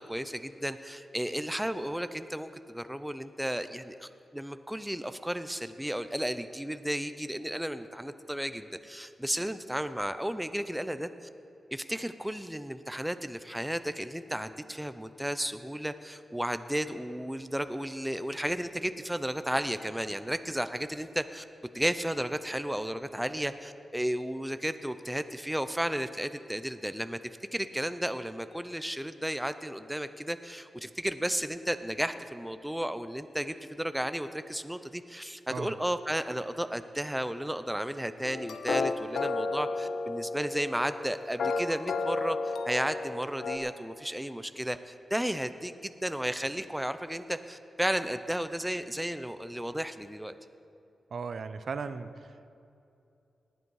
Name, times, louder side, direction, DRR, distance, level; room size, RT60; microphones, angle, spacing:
voice 1, 0.0-11.1 11.7-21.4 21.7-27.2 27.5-50.3, equal, 5° right, 10 dB, 0.4 m, -33 dB
sound 1, 38.2-43.6, left 3 dB, 80° left, 0.7 m, -32 dB
voice 2, 51.1-52.5, right 5 dB, 60° right, 11 dB, 0.5 m, -37 dB
19.0 x 7.8 x 4.7 m, 2.7 s
wide cardioid pair, 115°, 0 cm